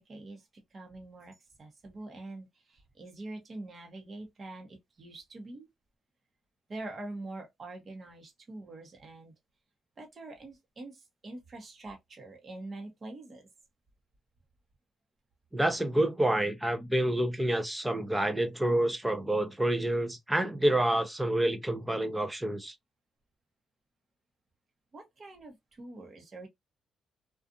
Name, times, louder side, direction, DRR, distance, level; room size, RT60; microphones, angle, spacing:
voice 1, 0.0-5.7 6.7-9.3 10.0-13.5 24.9-26.5, right 2 dB, 40° right, 0.9 m, -45 dB
voice 2, 15.5-22.7, right 1 dB, 10° right, 0.6 m, -28 dB
2.5 x 2.4 x 2.5 m
cardioid pair, 90°, 0 cm